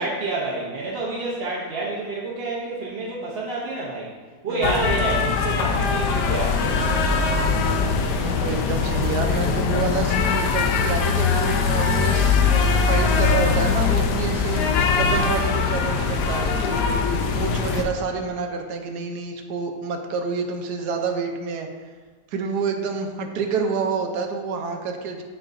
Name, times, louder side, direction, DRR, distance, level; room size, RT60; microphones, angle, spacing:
voice 1, 0.0-4.1 4.4-7.0 17.3-17.8, right 2 dB, 50° right, -5 dB, 0.8 m, -29 dB
sound 1, 4.6-17.8, left 5 dB, 80° left, 1.2 m, -21 dB
voice 2, 8.2-14.7 15.0-16.6 17.3-21.7 22.3-25.2, right 5 dB, 75° right, 4 dB, 1.2 m, -28 dB
8.9 x 4.8 x 2.5 m, 1.5 s
omnidirectional pair, 1.8 m